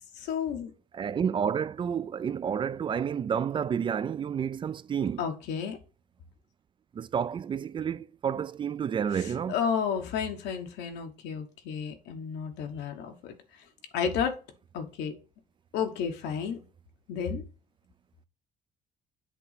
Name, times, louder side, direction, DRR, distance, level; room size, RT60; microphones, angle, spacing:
voice 1, 0.2-0.7 5.2-5.8 9.5-13.4 13.9-14.3 14.7-15.1 15.7-16.6 17.1-17.4, left 7 dB, 85° left, 1.3 m, -31 dB
voice 2, 0.9-5.3 6.9-9.6, right 7 dB, 30° right, 0.3 m, -30 dB
8.0 x 3.1 x 5.6 m
cardioid pair, 110°, 17 cm